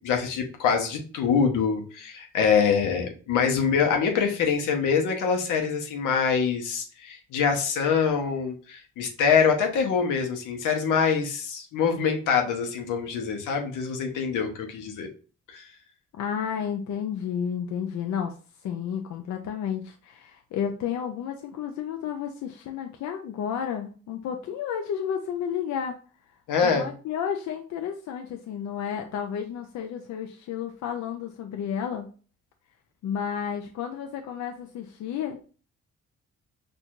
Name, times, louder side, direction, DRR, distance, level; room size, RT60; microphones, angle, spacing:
voice 1, 0.0-15.1 15.5-15.6 26.5-26.9, left 6 dB, 85° left, 3 dB, 0.9 m, -24 dB
voice 2, 16.2-18.4 18.6-26.0 26.6-32.1 33.0-35.4, left 8 dB, 65° left, 4 dB, 0.5 m, -31 dB
4.4 x 2.6 x 2.4 m, 0.38 s
cardioid pair, 90°, 30 cm